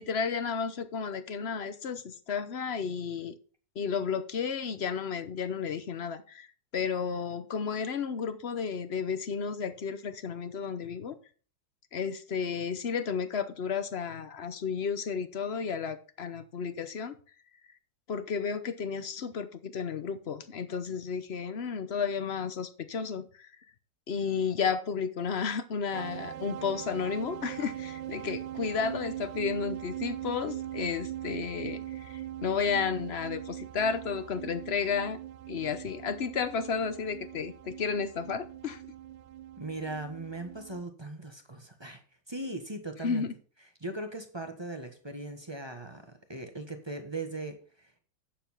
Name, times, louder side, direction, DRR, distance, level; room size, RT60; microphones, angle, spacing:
voice 1, 0.0-3.4 3.7-6.5 6.7-11.2 11.9-17.2 18.1-23.5 24.1-35.2 35.5-38.8 43.0-43.3, left 6 dB, 50° left, 0.8 m, -32 dB
sound 1, 25.9-40.8, right 12 dB, 80° right, 1.3 m, -41 dB
voice 2, 39.6-42.0 42.3-43.3 43.8-48.0, right 2 dB, 15° right, 1.1 m, -39 dB
9.0 x 7.0 x 5.5 m
omnidirectional pair, 2.0 m